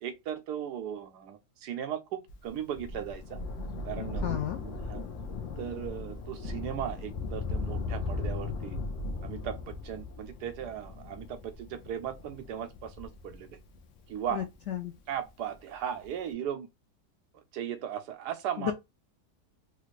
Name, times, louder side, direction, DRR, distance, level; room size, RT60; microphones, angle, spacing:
voice 1, 0.0-3.4 3.8-5.0 5.6-8.8 9.2-13.6 14.1-14.5 15.1-16.7 17.5-18.7, right 9 dB, 75° right, 1.1 m, -37 dB
Thunder, 2.3-15.2 16.0-16.1, left 3 dB, 60° left, 0.9 m, -38 dB
voice 2, 4.2-4.6 14.3-14.9 18.6-18.7, left 10 dB, 85° left, 0.6 m, -32 dB
3.3 x 2.4 x 3.1 m
omnidirectional pair, 1.8 m